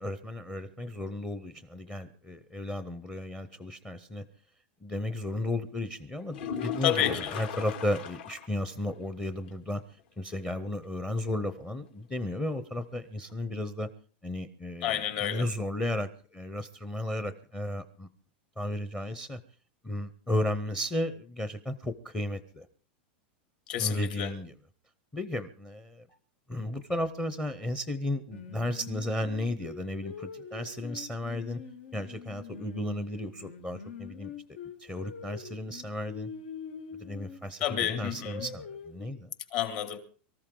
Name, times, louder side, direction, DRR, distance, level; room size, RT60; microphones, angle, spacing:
voice 1, 0.0-4.2 4.8-9.8 10.2-13.9 14.2-18.1 18.6-19.4 19.8-22.7 23.8-24.5 25.1-26.2 26.5-31.6 31.9-34.3 34.8-36.3 37.0-39.3, left 1 dB, 10° left, 0.7 m, -34 dB
sound 1, 6.3-8.6 8.9-9.0 9.4-9.5 13.3-13.4, left 7 dB, 70° left, 2.7 m, -37 dB
voice 2, 6.8-7.3 14.8-15.4 23.7-24.3 37.6-38.4 39.5-40.0, left 11 dB, 50° left, 2.3 m, -30 dB
Singing, 28.3-33.0 33.4-37.4 37.9-39.1, left 6 dB, 90° left, 2.5 m, -44 dB
24.0 x 14.0 x 3.8 m
supercardioid pair, 165°, 6 cm